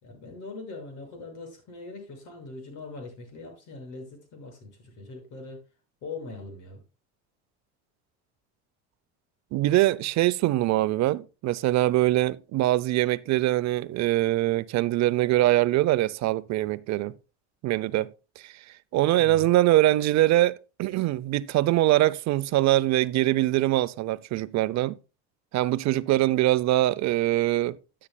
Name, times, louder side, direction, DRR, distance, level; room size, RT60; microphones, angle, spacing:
voice 1, 0.0-5.6 6.0-6.8 19.2-19.5, left 3 dB, 65° left, 6.3 m, -41 dB
voice 2, 9.5-17.1 17.6-18.5 18.9-25.0 25.5-27.8, right 15 dB, 55° right, 0.6 m, -23 dB
13.5 x 8.7 x 2.2 m
supercardioid pair, 95°, 33 cm